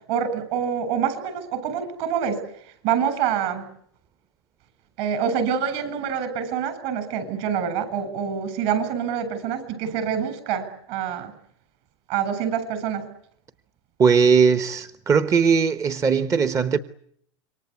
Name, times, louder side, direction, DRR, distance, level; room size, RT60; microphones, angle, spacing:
voice 1, 0.1-2.4 2.8-3.6 5.0-11.3 12.1-13.1, right 8 dB, 55° right, 8.0 m, -26 dB
voice 2, 14.0-16.8, right 6 dB, 20° right, 1.1 m, -19 dB
27.5 x 24.0 x 8.4 m
supercardioid pair, 130°, 15 cm